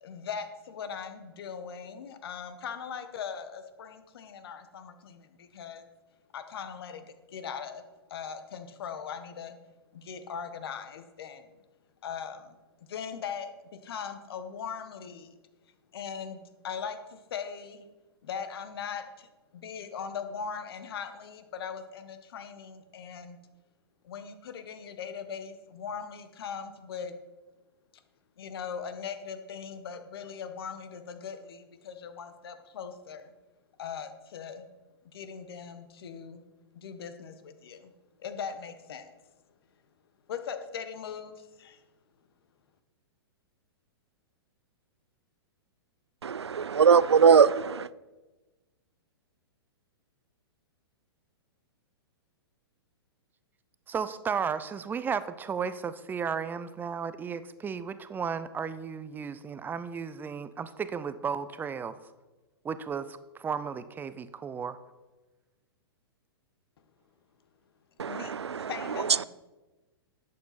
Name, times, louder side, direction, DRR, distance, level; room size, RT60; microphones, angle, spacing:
voice 1, 0.0-5.9 6.3-7.8 8.1-9.6 9.9-11.5 12.0-12.6 12.9-15.3 15.9-17.9 18.2-23.4 24.0-27.1 28.4-33.3 33.8-34.6 35.1-36.4 36.7-37.9 38.2-39.1 40.3-41.8 68.0-68.4 68.7-69.2, left 7 dB, 65° left, 1.2 m, -40 dB
voice 2, 46.2-47.9 68.0-68.7 69.0-69.2, right 6 dB, 90° right, 0.4 m, -21 dB
voice 3, 53.9-62.0 62.6-64.8, right 6 dB, 15° right, 0.5 m, -34 dB
11.0 x 8.5 x 4.1 m
hypercardioid pair, 115°, 14 cm